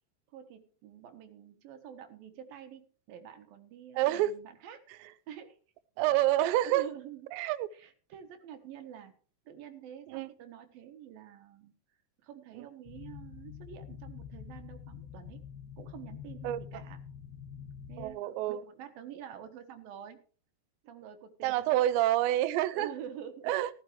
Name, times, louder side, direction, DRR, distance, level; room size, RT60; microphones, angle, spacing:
voice 1, 0.3-4.8 5.3-5.6 6.1-6.3 6.6-7.3 7.7-9.1 9.5-11.7 12.2-15.4 15.8-17.0 17.9-20.2 20.8-21.8 22.5-23.5, right 9 dB, 65° right, 2.7 m, -47 dB
voice 2, 4.0-4.3 6.0-6.8 7.3-7.7 10.1-10.3 16.4-16.6 18.0-18.6 21.4-22.9 23.5-23.7, right 14 dB, 85° right, 2.9 m, -27 dB
sound 1, 12.9-18.1, left 8 dB, 85° left, 3.7 m, -46 dB
14.0 x 14.0 x 3.2 m
omnidirectional pair, 5.0 m